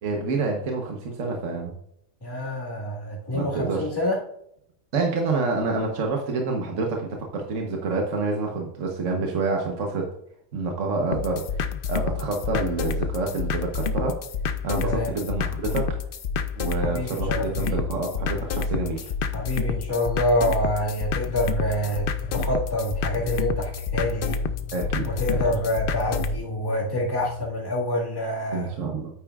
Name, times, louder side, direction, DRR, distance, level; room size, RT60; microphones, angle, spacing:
voice 1, 0.0-1.7 3.3-3.9 4.9-10.1 10.5-11.5 11.9-14.2 14.6-16.0 16.5-19.1 24.7-25.1 28.5-29.1, right 3 dB, 60° right, 1 dB, 1.4 m, -27 dB
voice 2, 2.2-4.2 14.8-15.1 16.8-17.8 19.3-24.4 25.0-28.7, left 1 dB, 15° left, -3 dB, 1.9 m, -27 dB
sound 1, 11.1-26.4, left 5 dB, 60° left, 0.6 m, -29 dB
sound 2, 21.3-27.4, left 3 dB, 90° left, 2.3 m, -41 dB
9.4 x 8.8 x 2.4 m, 0.71 s
omnidirectional pair, 1.5 m